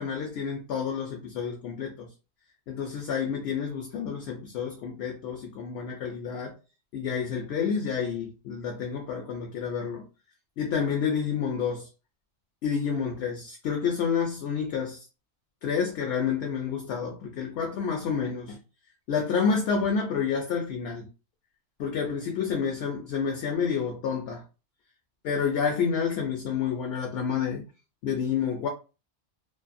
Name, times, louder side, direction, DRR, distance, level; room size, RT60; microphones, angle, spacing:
voice 1, 0.0-2.1 2.7-6.6 6.9-10.1 10.6-11.9 12.6-15.1 15.6-18.6 19.1-21.1 21.8-24.4 25.2-27.6 28.0-28.7, left 6 dB, 65° left, 0.8 m, -29 dB
2.5 x 2.3 x 2.5 m
omnidirectional pair, 1.2 m